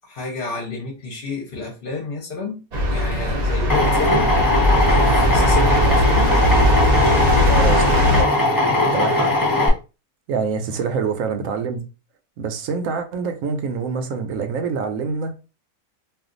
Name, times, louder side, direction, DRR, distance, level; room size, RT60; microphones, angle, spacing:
voice 1, 0.0-2.6 2.9-4.3 4.8-6.3 10.7-10.8, left 3 dB, 50° left, 0.8 m, -30 dB
sound 1, 2.7-8.2, equal, 45° right, 0.5 m, -19 dB
Drill, 3.7-9.7, left 2 dB, 25° left, 0.5 m, -19 dB
voice 2, 6.2-7.1 7.5-7.9 8.2-8.5 8.8-9.3 10.3-11.9 12.4-15.3, right 5 dB, 70° right, 1.0 m, -26 dB
2.4 x 2.4 x 3.7 m
omnidirectional pair, 1.5 m